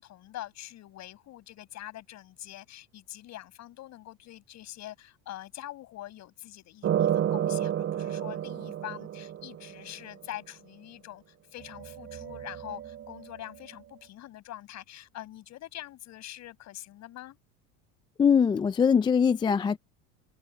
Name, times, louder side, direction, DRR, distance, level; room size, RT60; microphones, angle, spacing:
voice 1, 0.0-11.2 11.5-17.4, left 14 dB, 45° left, 6.8 m, -44 dB
sound 1, 6.8-9.9 11.6-13.3, right 10 dB, 35° right, 2.8 m, -31 dB
voice 2, 18.2-19.8, left 6 dB, 15° left, 0.3 m, -22 dB
supercardioid pair, 130°, 37 cm